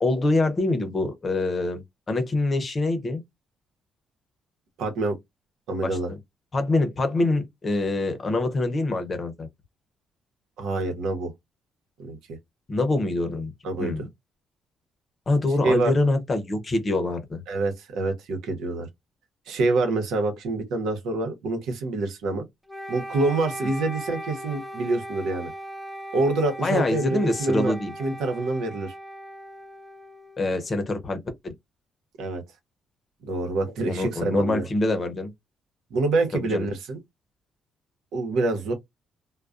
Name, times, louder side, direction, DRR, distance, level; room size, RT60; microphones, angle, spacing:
voice 1, 0.0-3.2 5.8-6.2 6.5-9.5 12.7-13.5 13.8-14.0 15.3-17.4 26.6-27.9 30.4-31.5 33.9-35.3 36.3-36.7, left 2 dB, 35° left, 0.7 m, -25 dB
voice 2, 4.8-5.2 5.7-6.1 10.6-11.3 12.0-12.2 13.6-14.0 15.6-15.9 17.5-18.9 19.5-22.4 22.9-25.5 26.1-27.7 28.0-28.9 32.2-32.4 33.2-34.7 35.9-37.0 38.1-38.7, right 2 dB, 85° right, 0.9 m, -26 dB
Wind instrument woodwind instrument, 22.7-30.7, equal, ahead, 0.3 m, -38 dB
2.3 x 2.2 x 2.5 m
cardioid pair, 90°, 0 cm